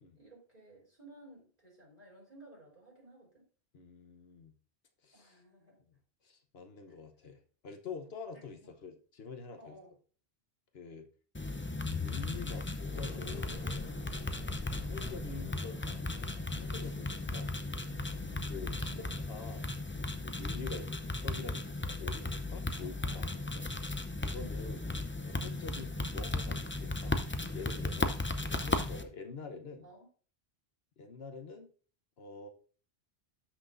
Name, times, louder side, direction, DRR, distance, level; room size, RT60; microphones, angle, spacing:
voice 1, 0.2-3.4 5.1-5.8 6.9-7.0 8.3-8.7 9.6-9.9 14.0-14.3 18.2-18.4 18.7-19.3 20.7-20.9 22.8-23.4 24.4-24.6 29.8-30.1, right 1 dB, 40° right, -4 dB, 4.3 m, -57 dB
voice 2, 3.7-4.5 5.0-5.4 5.9-6.0 6.2-9.8 10.7-11.1 11.9-13.6 14.9-17.5 18.5-19.6 20.2-20.9 21.2-23.7 24.2-24.8 25.2-27.2 27.5-28.2 28.5-29.9 31.0-31.7 32.2-32.5, left 5 dB, 70° left, 5 dB, 1.2 m, -46 dB
sound 1, 11.3-29.0, left 2 dB, 15° left, 0.4 m, -36 dB
sound 2, 12.9-21.1, left 3 dB, 40° left, 0.9 m, -54 dB
13.0 x 6.0 x 2.6 m, 0.41 s
omnidirectional pair, 1.1 m